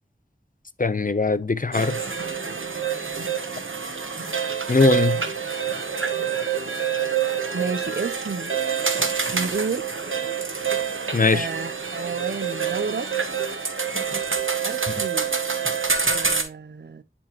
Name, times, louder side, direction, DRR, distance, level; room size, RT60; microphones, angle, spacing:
voice 1, 0.8-2.0 4.7-5.2 11.1-11.5, left 3 dB, 45° left, 0.6 m, -20 dB
sound 1, 1.7-16.4, right 6 dB, 90° right, 1.1 m, -26 dB
voice 2, 7.5-8.5 9.3-9.9 11.3-13.1 14.6-15.3 16.0-17.0, right 4 dB, 60° right, 0.5 m, -31 dB
10.5 x 4.3 x 2.9 m
wide cardioid pair, 40°, 20 cm